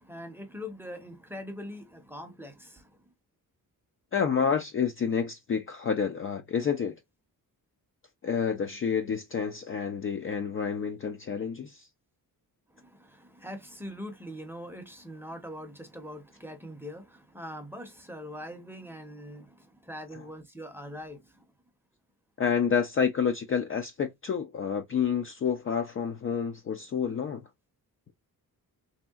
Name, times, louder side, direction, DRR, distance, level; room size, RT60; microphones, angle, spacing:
voice 1, 0.0-2.8 12.8-21.2, equal, 5° right, 0.6 m, -42 dB
voice 2, 4.1-7.0 8.2-11.9 20.1-20.3 22.4-27.4, left 7 dB, 35° left, 0.4 m, -29 dB
3.2 x 2.7 x 2.3 m
wide cardioid pair, 130°, 36 cm